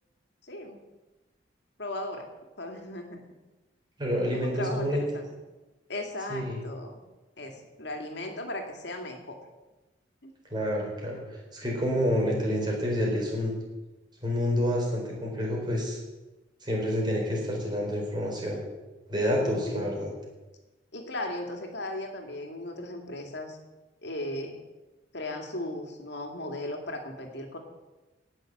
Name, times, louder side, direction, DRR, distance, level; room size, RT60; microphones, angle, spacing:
voice 1, 0.4-0.8 1.8-2.3 2.6-3.3 4.3-5.2 5.9-7.0 7.4-9.4 10.2-10.3 19.4-19.9 20.9-23.6 24.0-24.6 25.1-27.6, left 1 dB, 65° left, 4 dB, 2.4 m, -37 dB
voice 2, 4.0-5.0 6.3-6.6 10.5-11.2 11.5-13.5 14.2-16.0 16.6-18.6 19.1-20.1, equal, 25° right, -1 dB, 4.4 m, -28 dB
18.0 x 6.5 x 7.9 m, 1.1 s
head